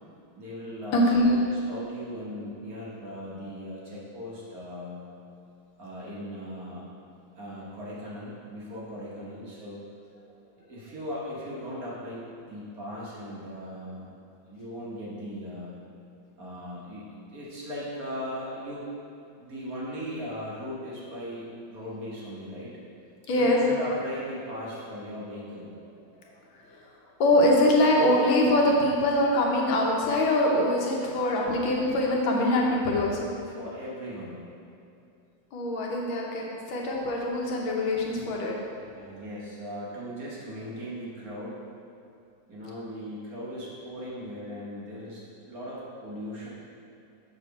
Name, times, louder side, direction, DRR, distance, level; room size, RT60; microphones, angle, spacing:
voice 1, 0.3-1.4 1.6-5.1 5.8-6.9 7.4-9.8 10.7-14.1 14.5-15.7 16.4-18.9 19.4-22.7 23.2-25.7 33.4-34.4 39.0-41.6 42.5-46.5, equal, 50° right, -6 dB, 1.6 m, -38 dB
voice 2, 0.9-1.3 23.3-23.6 26.7-26.8 27.2-33.3 35.5-38.5 38.9-39.1, left 1 dB, 80° left, -1 dB, 1.7 m, -23 dB
6.4 x 3.8 x 5.7 m, 2.6 s
omnidirectional pair, 2.2 m